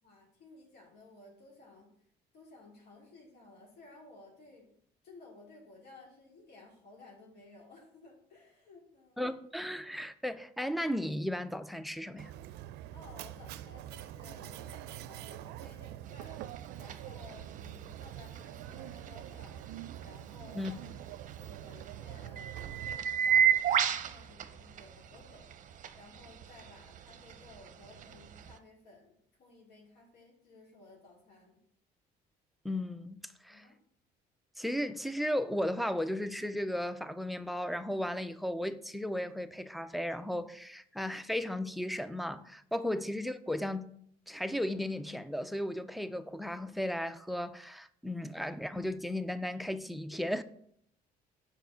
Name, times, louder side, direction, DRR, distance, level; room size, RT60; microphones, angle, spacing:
voice 1, 0.0-1.9 2.3-4.7 5.0-9.2 12.9-19.6 20.0-21.1 21.4-29.1 29.4-31.6 33.5-33.8, left 3 dB, 70° left, 2.7 m, -56 dB
voice 2, 9.2-12.3 20.5-20.7 32.6-33.7 34.6-43.9 44.3-50.4, left 1 dB, ahead, 0.4 m, -35 dB
Mechanisms, 12.2-23.0, right 12 dB, 85° right, 0.4 m, -45 dB
sound 1, 16.1-28.6, right 9 dB, 50° right, 0.7 m, -35 dB
6.9 x 4.9 x 5.0 m
cardioid pair, 110°, 17 cm